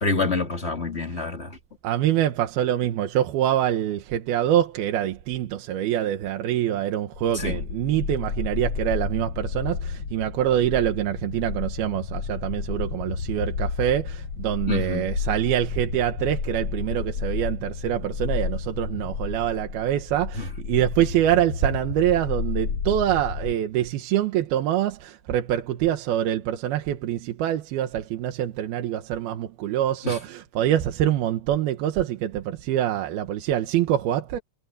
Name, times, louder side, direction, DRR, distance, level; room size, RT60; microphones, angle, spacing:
voice 1, 0.0-1.6 7.3-7.6 14.7-15.1 20.4-20.5 30.0-30.2, left 3 dB, 20° left, 2.2 m, -27 dB
voice 2, 1.8-34.4, right 11 dB, 80° right, 3.1 m, -25 dB
sound 1, 7.1-23.5, left 5 dB, 40° left, 3.1 m, -31 dB
omnidirectional pair, 4.4 m